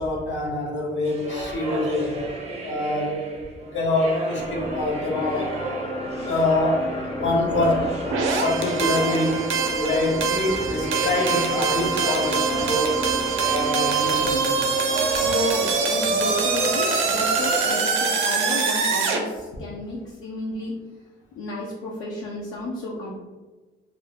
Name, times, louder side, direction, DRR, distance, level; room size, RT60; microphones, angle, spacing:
voice 1, 0.0-2.2 2.6-3.1 3.7-5.5 6.0-6.9 7.1-7.9 8.4-9.5 9.7-13.0 13.5-14.5 15.2-15.3, left 2 dB, 70° left, -1 dB, 0.9 m, -25 dB
sound 1, 1.0-18.9, right 1 dB, 35° right, 0.6 m, -33 dB
sound 2, 4.4-17.7, equal, 20° left, 0.4 m, -34 dB
sound 3, 8.1-19.2, right 5 dB, 80° right, 0.5 m, -24 dB
voice 2, 15.2-20.8 21.4-23.1, left 1 dB, 85° left, -4 dB, 0.5 m, -31 dB
2.5 x 2.1 x 3.4 m, 1.3 s
cardioid pair, 90°, 20 cm